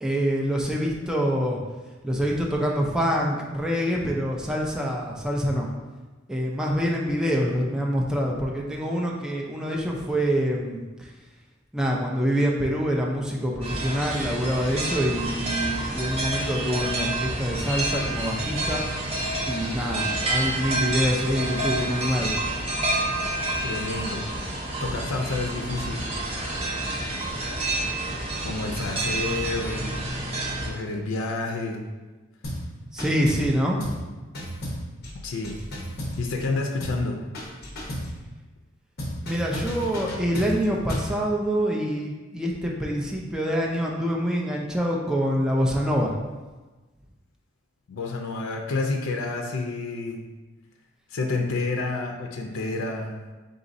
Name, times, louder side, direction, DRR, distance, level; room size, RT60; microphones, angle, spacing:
voice 1, 0.0-1.6 2.0-5.7 6.3-11.1 11.7-18.8 19.5-22.3 32.9-33.8 39.2-46.1, equal, 5° right, -2 dB, 0.4 m, -26 dB
sound 1, 13.6-30.7, right 2 dB, 30° right, 0.7 m, -29 dB
voice 2, 23.6-24.2 24.8-26.1 28.4-30.0 30.7-31.8 35.2-35.6 36.2-37.2 47.9-50.3 51.1-53.2, left 3 dB, 85° left, 2 dB, 0.5 m, -29 dB
sound 2, 32.4-32.7 33.0-33.5 33.8-34.1 34.3-36.5 36.8-37.1 37.3-38.1 39.0-41.1, equal, 50° left, 0.9 m, -33 dB
4.0 x 3.9 x 2.6 m, 1.2 s
head